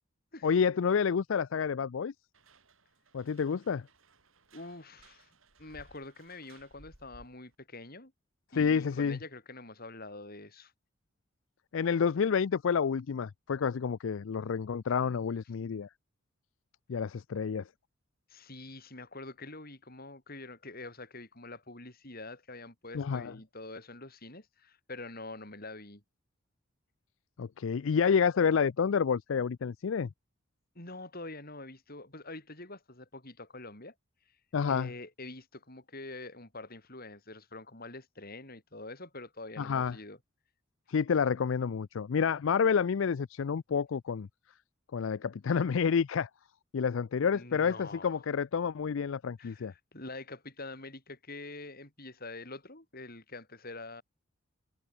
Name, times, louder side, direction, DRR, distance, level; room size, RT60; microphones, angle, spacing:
voice 1, 0.4-2.1 3.1-3.9 8.5-9.2 11.7-15.9 16.9-17.6 22.9-23.3 27.4-30.1 34.5-34.9 39.6-40.0 40.9-44.3 44.9-46.3 46.7-49.7, left 6 dB, 70° left, 0.4 m, -29 dB
sound 1, 2.3-7.5, right 2 dB, 80° right, 6.6 m, -60 dB
voice 2, 4.5-5.3 5.6-8.1 8.5-10.7 18.3-26.0 30.7-33.9 34.7-40.2 47.3-48.2 49.4-54.0, left 2 dB, 50° left, 7.8 m, -46 dB
head